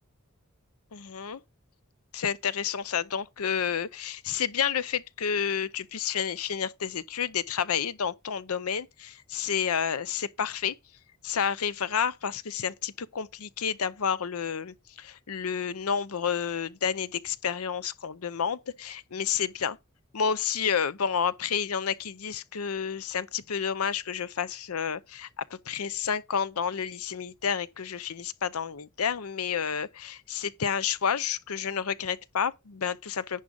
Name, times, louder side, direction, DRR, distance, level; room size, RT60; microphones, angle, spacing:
voice 1, 0.9-1.4 2.1-10.7 11.2-19.8 20.1-33.4, left 7 dB, 80° left, 0.7 m, -30 dB
10.5 x 4.7 x 5.3 m
head